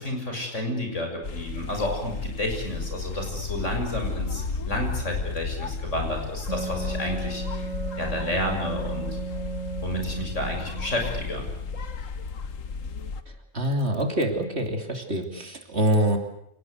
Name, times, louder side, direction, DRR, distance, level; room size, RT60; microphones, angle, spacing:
voice 1, 0.0-7.4 8.0-9.2 9.8-11.5, left 1 dB, 65° left, 3 dB, 6.8 m, -31 dB
sound 1, 1.2-13.2, left 4 dB, 80° left, 1.7 m, -33 dB
Wind instrument woodwind instrument, 6.5-11.9, right 4 dB, 30° right, 3.3 m, -35 dB
voice 2, 13.3-16.2, right 1 dB, 55° right, 4 dB, 3.4 m, -25 dB
28.0 x 19.0 x 8.1 m, 0.76 s
omnidirectional pair, 1.3 m